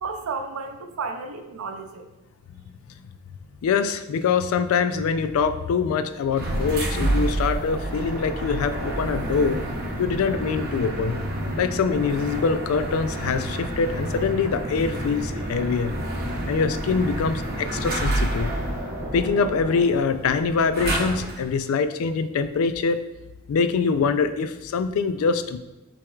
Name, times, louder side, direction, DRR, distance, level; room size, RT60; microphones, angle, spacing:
voice 1, 0.0-2.1, right 4 dB, 85° right, 6 dB, 0.4 m, -32 dB
voice 2, 3.6-9.6 10.0-11.2 11.6-15.9 16.5-18.5 19.1-23.0 23.5-25.6, left 5 dB, 75° left, 10 dB, 0.3 m, -24 dB
sound 1, 6.3-21.5, right 1 dB, 45° right, 0.7 m, -29 dB
5.9 x 3.4 x 2.3 m, 1.0 s
head